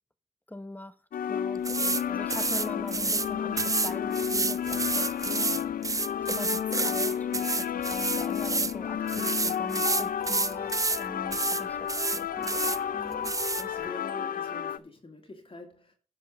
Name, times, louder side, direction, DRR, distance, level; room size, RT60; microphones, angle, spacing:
voice 1, 0.5-1.0 1.3-5.6 6.3-13.3, left 1 dB, 10° left, 1.0 m, -42 dB
sound 1, 1.1-14.8, left 9 dB, 65° left, 0.6 m, -32 dB
sound 2, 1.6-2.0 2.3-3.3 3.6-8.7 9.1-11.0 11.3-11.6 11.9-12.8 13.2-13.6, right 3 dB, 20° right, 0.5 m, -29 dB
voice 2, 5.5-5.8 12.6-13.0 13.6-15.9, left 2 dB, 35° left, 2.7 m, -46 dB
10.5 x 4.9 x 6.4 m
supercardioid pair, 45°, 16 cm